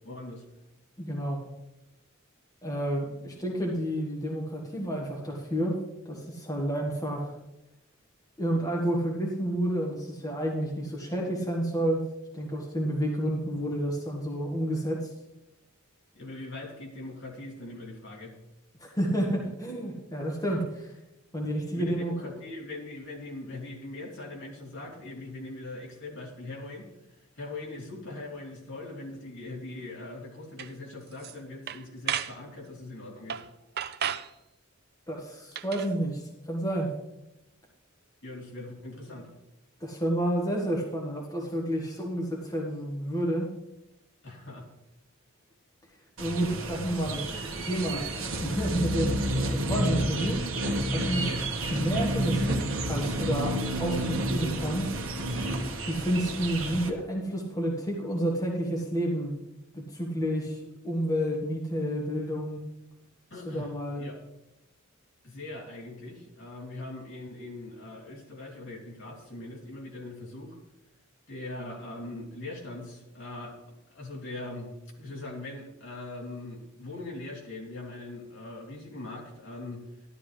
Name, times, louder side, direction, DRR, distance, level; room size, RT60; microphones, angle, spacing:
voice 1, 0.0-0.4 16.1-18.4 21.7-26.9 27.4-33.4 38.2-39.3 44.2-44.7 51.1-51.4 63.3-63.7 64.0-64.2 65.2-70.6 71.3-74.7 75.0-79.8, left 2 dB, 60° left, -2 dB, 2.9 m, -41 dB
voice 2, 1.0-1.4 2.6-5.8 6.0-7.3 8.4-12.0 12.3-15.1 18.8-20.9 21.3-22.2 35.1-36.9 39.8-43.5 46.2-48.0 48.4-49.1 49.5-51.3 51.7-54.9 55.9-59.3 59.7-62.6 63.4-64.0, right 1 dB, 15° left, -2 dB, 1.6 m, -30 dB
sound 1, 30.6-30.7 31.1-31.4 31.7-32.4 33.3-33.5 33.8-34.3 35.5-35.9, right 9 dB, 50° right, 0.5 m, -33 dB
sound 2, 46.2-56.9, right 1 dB, 65° right, 1.3 m, -30 dB
12.5 x 12.0 x 3.3 m, 0.91 s
head